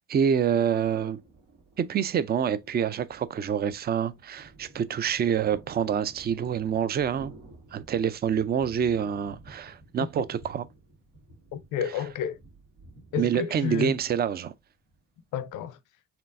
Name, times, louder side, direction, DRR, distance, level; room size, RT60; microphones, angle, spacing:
voice 1, 0.1-1.2 1.8-7.3 7.7-10.6 13.2-14.5, right 8 dB, 35° right, 0.4 m, -27 dB
Thunder, 0.8-15.6, right 2 dB, 85° right, 1.8 m, -53 dB
voice 2, 11.5-12.4 13.1-14.0 15.3-15.8, left 8 dB, 85° left, 0.6 m, -30 dB
4.3 x 3.3 x 2.5 m
cardioid pair, 90°, 30 cm